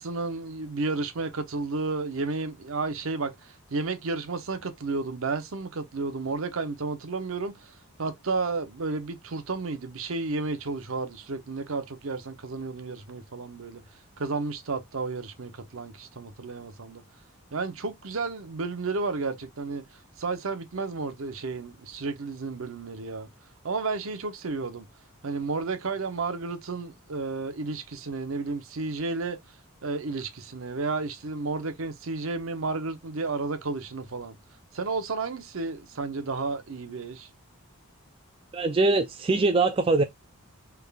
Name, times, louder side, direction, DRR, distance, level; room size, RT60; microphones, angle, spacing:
voice 1, 0.0-7.7 8.0-13.8 14.2-17.0 17.5-19.8 20.2-23.3 23.6-24.9 25.2-29.4 29.8-34.4 34.7-37.3, right 3 dB, 65° right, 0.7 m, -32 dB
voice 2, 38.5-40.0, right 3 dB, 25° right, 0.3 m, -22 dB
3.5 x 3.3 x 2.3 m
head